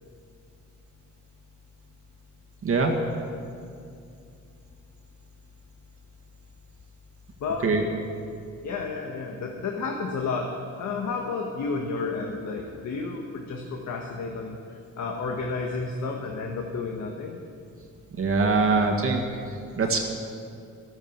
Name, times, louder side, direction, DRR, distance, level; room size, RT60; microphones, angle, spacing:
voice 1, 2.6-2.9 7.6-7.8 18.2-19.2 19.8-20.0, right 4 dB, 45° right, 1 dB, 1.9 m, -22 dB
voice 2, 7.4-7.7 8.6-10.5 10.8-14.6 15.0-17.4, left 4 dB, 70° left, 1 dB, 1.5 m, -31 dB
13.0 x 12.5 x 7.3 m, 2.5 s
cardioid pair, 90°, 30 cm